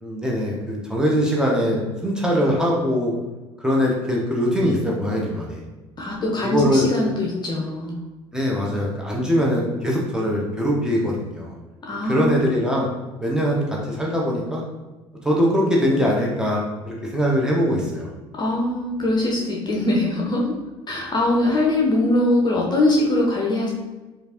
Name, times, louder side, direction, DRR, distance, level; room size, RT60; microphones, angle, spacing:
voice 1, 0.0-3.2 3.6-5.6 6.4-6.8 8.3-11.5 12.1-12.9 13.2-14.6 15.2-18.1, equal, 5° right, -3 dB, 1.0 m, -22 dB
voice 2, 6.0-7.9 11.9-12.5 18.4-20.5 20.9-23.7, left 1 dB, 30° left, -3 dB, 0.8 m, -22 dB
4.9 x 2.6 x 2.9 m, 1.1 s
figure-of-eight pair, 55°, 15 cm